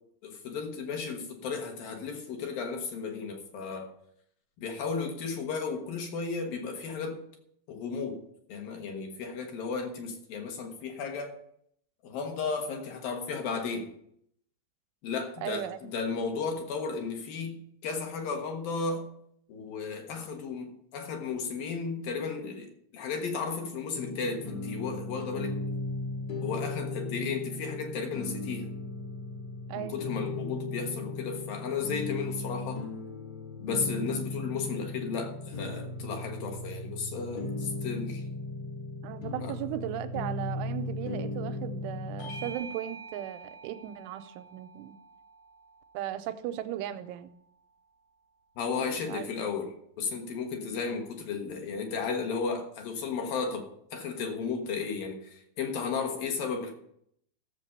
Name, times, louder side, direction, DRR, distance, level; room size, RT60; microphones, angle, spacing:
voice 1, 0.2-3.9 4.6-7.2 7.7-8.2 8.5-11.3 12.0-13.9 15.0-19.1 19.5-25.6 26.4-28.7 29.7-32.9 33.6-38.2 39.4-39.6 48.6-53.7 53.9-56.7, left 5 dB, 65° left, 3 dB, 2.6 m, -34 dB
voice 2, 15.4-15.9 29.7-30.0 39.0-45.0 45.9-47.3 48.9-49.3, right 11 dB, 90° right, 9 dB, 3.1 m, -37 dB
sound 1, 23.9-42.5, left 2 dB, 40° left, 1.3 m, -37 dB
Bell / Doorbell, 42.2-47.0, right 3 dB, 80° left, 4.5 m, -47 dB
14.5 x 7.4 x 5.4 m, 0.70 s
omnidirectional pair, 5.5 m